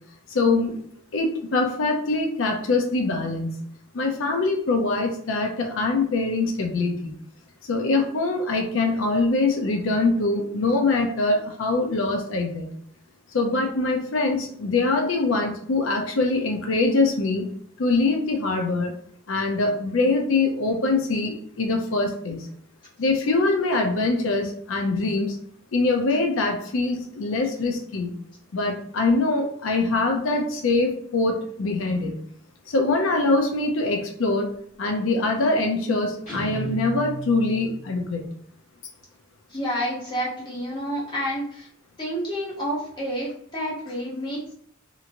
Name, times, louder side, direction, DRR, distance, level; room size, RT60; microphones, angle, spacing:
voice 1, 0.3-0.8 1.1-3.5 3.9-7.1 7.6-12.7 13.3-17.5 17.8-18.9 19.3-22.4 23.0-25.4 25.7-28.1 28.5-32.1 32.7-34.5 34.8-38.3, left 3 dB, 90° left, 2 dB, 0.5 m, -23 dB
Guitar, 36.3-38.0, right 1 dB, 40° left, 1.3 m, -34 dB
voice 2, 39.5-41.7 42.0-44.5, equal, 25° left, -6 dB, 1.0 m, -29 dB
2.9 x 2.8 x 2.5 m, 0.63 s
head